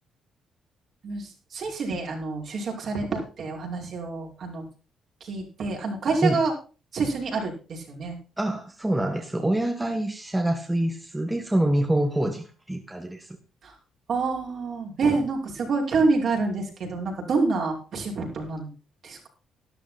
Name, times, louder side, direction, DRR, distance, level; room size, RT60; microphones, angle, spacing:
voice 1, 1.0-4.7 5.2-6.5 6.9-8.1 13.6-13.7 14.1-18.7 19.0-19.3, right 4 dB, 60° right, 0 dB, 5.7 m, -27 dB
voice 2, 8.4-13.4, right 1 dB, 10° right, 4 dB, 1.8 m, -26 dB
12.5 x 11.5 x 4.3 m, 0.34 s
cardioid pair, 90°, 0 cm